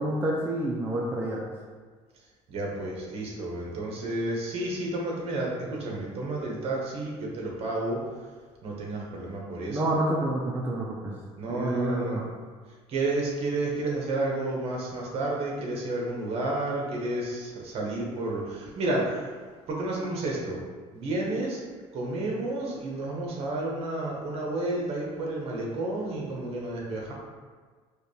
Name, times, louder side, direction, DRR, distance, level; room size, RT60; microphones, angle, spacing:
voice 1, 0.0-1.4 9.7-11.2 11.5-12.2, right 1 dB, 15° right, -4 dB, 0.5 m, -28 dB
voice 2, 2.5-8.0 8.6-9.8 11.4-12.2 12.9-19.2 19.7-20.6 20.9-21.6 21.9-27.1, right 2 dB, 50° right, -2 dB, 1.1 m, -31 dB
4.9 x 2.4 x 3.2 m, 1.5 s
cardioid pair, 120°, 13 cm